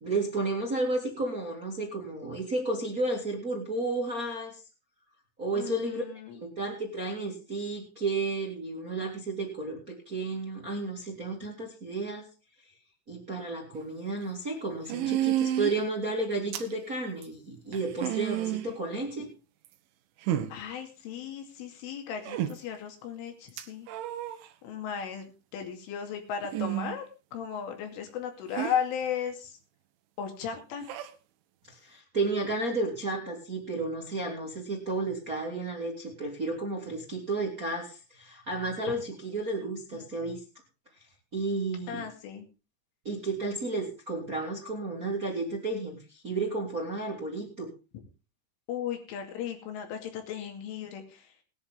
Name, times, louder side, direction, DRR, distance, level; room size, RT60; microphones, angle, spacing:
voice 1, 0.0-4.6 5.4-6.0 6.3-12.3 13.1-19.3 31.7-40.4 41.3-42.0 43.0-47.7, right 2 dB, 30° right, 1 dB, 1.6 m, -32 dB
voice 2, 5.5-6.4 20.5-23.9 24.6-25.2 25.5-29.6 30.2-30.9 39.9-40.0 41.9-42.5 48.7-51.3, left 8 dB, 90° left, 4 dB, 4.9 m, -36 dB
sound 1, 13.7-13.8 14.9-15.8 16.5-16.7 17.2-17.3 17.7-18.7 19.7-19.8 20.3-20.5 22.3-22.5 23.6-24.4 26.4-27.0 28.6-28.8 30.8-31.1, right 12 dB, 80° right, 3.6 m, -30 dB
19.5 x 10.5 x 3.6 m, 0.30 s
omnidirectional pair, 5.5 m